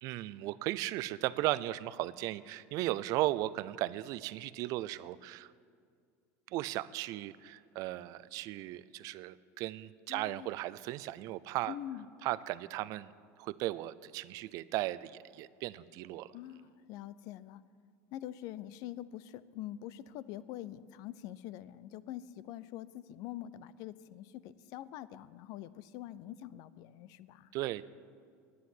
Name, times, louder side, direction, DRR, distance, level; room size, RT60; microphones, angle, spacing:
voice 1, 0.0-5.5 6.5-11.8 12.2-13.1 13.4-16.4 27.5-27.9, right 16 dB, 55° right, 16 dB, 0.4 m, -36 dB
voice 2, 10.1-10.5 11.7-12.1 16.3-17.6 18.1-27.5, left 12 dB, 60° left, 17 dB, 0.5 m, -45 dB
10.0 x 9.5 x 9.7 m, 2.2 s
cardioid pair, 150°, 7 cm